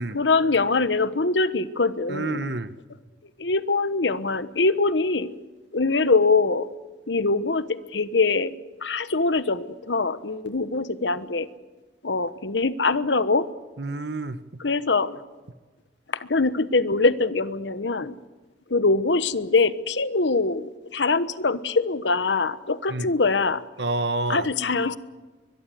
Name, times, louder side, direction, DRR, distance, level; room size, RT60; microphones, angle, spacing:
voice 1, 0.1-2.4 3.4-5.3 5.7-6.7 7.1-8.5 8.8-11.5 12.0-13.5 14.6-15.2 16.1-18.2 18.7-23.6 24.3-25.0, left 3 dB, 90° left, 14 dB, 1.2 m, -23 dB
voice 2, 2.1-2.7 13.8-14.4 22.9-23.1 23.8-24.5, right 2 dB, 70° right, 13 dB, 1.2 m, -28 dB
23.0 x 21.5 x 7.8 m, 1.3 s
head